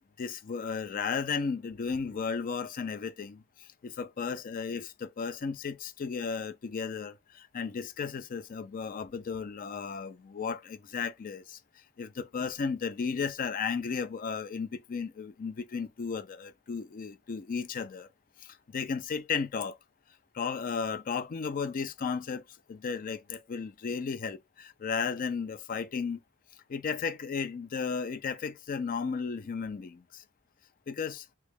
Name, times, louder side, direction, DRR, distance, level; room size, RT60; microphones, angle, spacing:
voice 1, 0.2-11.6 12.0-18.1 18.4-19.8 20.3-22.4 22.7-26.2 26.7-30.2 30.9-31.3, left 5 dB, 40° left, 0.4 m, -34 dB
3.1 x 2.8 x 3.4 m
head